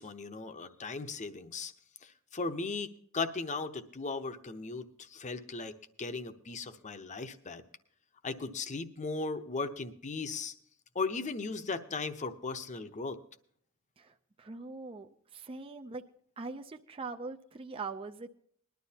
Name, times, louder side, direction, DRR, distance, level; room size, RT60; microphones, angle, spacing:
voice 1, 0.0-1.7 2.0-7.6 8.2-10.5 10.9-13.2, left 3 dB, 35° left, 9 dB, 0.8 m, -37 dB
voice 2, 14.0-16.0 16.4-18.3, right 3 dB, 25° right, 5 dB, 0.5 m, -42 dB
20.5 x 11.5 x 2.8 m, 0.62 s
head